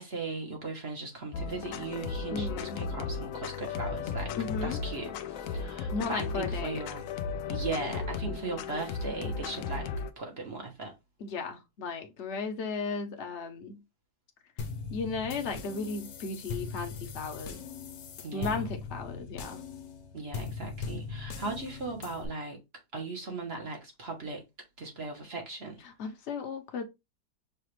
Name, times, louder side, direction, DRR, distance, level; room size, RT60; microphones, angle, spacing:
voice 1, 0.0-4.3 4.6-7.0 7.5-9.9 10.2-10.9 18.2-18.7 20.1-22.6 22.9-24.4 24.8-25.8, right 3 dB, 45° right, 1.0 m, -38 dB
sound 1, 1.3-10.1, left 5 dB, 90° left, 0.7 m, -35 dB
voice 2, 2.3-2.8 4.4-4.8 5.9-6.8 11.2-13.8 14.9-17.6 18.3-19.6 25.8-26.8, left 4 dB, 50° left, 0.9 m, -35 dB
sound 2, 14.6-22.3, left 5 dB, 75° left, 1.4 m, -40 dB
5.8 x 2.4 x 3.1 m
omnidirectional pair, 1.9 m